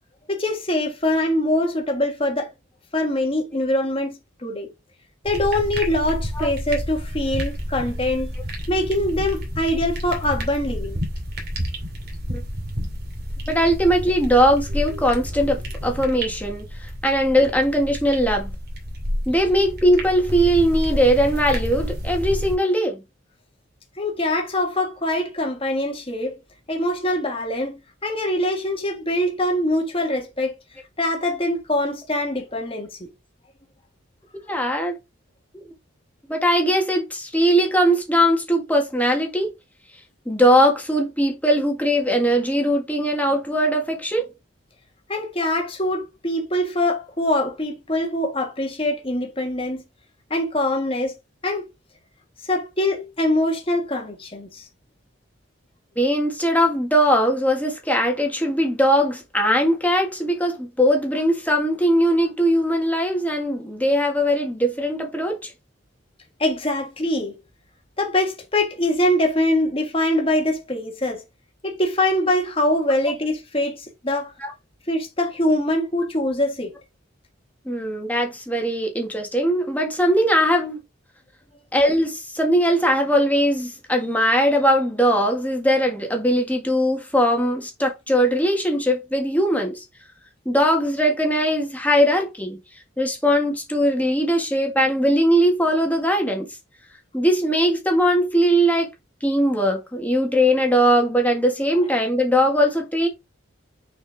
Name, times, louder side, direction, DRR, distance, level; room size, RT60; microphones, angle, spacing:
voice 1, 0.3-2.5 2.9-4.7 5.2-8.3 8.7-11.0 24.0-26.4 26.7-30.5 31.0-33.1 45.1-49.8 50.3-51.1 51.4-51.6 52.4-54.6 66.4-67.3 68.0-71.2 71.6-74.3 74.9-76.7, left 1 dB, 25° left, 1.5 m, -23 dB
sound 1, 5.2-22.6, equal, 50° right, 2.5 m, -30 dB
voice 2, 13.5-18.5 19.3-23.0 34.5-35.0 35.5-35.6 36.3-39.5 40.2-44.3 56.0-65.5 74.4-74.5 77.6-80.8 81.7-89.8 90.4-92.6 93.0-96.5 97.1-98.9 99.2-103.1, equal, 10° left, 1.6 m, -20 dB
6.6 x 4.5 x 3.4 m
head